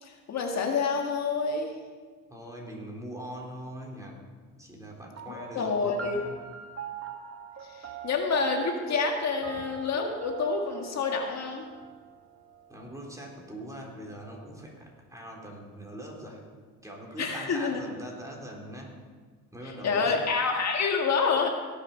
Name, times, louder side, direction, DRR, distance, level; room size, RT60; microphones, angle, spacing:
voice 1, 0.0-1.7 5.3-6.2 7.7-11.7 17.2-17.8 19.8-21.5, left 5 dB, 60° left, 2 dB, 1.7 m, -28 dB
voice 2, 2.3-4.2 4.5-6.4 12.7-16.4 16.8-18.9 19.5-20.1, right 1 dB, 10° right, -1 dB, 3.7 m, -42 dB
sound 1, 5.2-14.0, right 8 dB, 50° right, 1.2 m, -42 dB
18.0 x 7.2 x 5.5 m, 1.5 s
cardioid pair, 90°, 30 cm